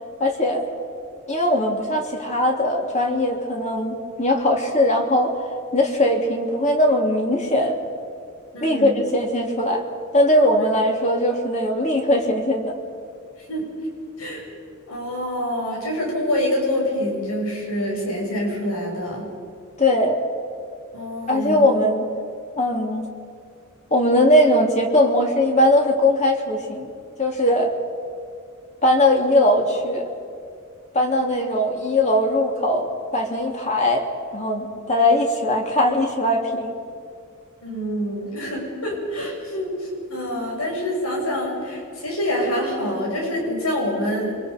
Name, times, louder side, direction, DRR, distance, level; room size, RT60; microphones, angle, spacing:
voice 1, 0.2-0.6 1.3-5.4 5.7-7.8 8.6-9.9 10.1-12.8 19.8-20.2 21.3-22.1 22.6-23.1 23.9-26.9 27.2-27.7 28.8-30.1 30.9-36.7, left 1 dB, 35° left, 1 dB, 3.1 m, -20 dB
voice 2, 8.5-8.9 10.6-10.7 13.5-13.6 14.2-14.5 14.9-19.3 20.9-21.7 37.6-44.4, equal, 80° left, -1 dB, 7.1 m, -26 dB
29.5 x 25.0 x 5.3 m, 2.4 s
head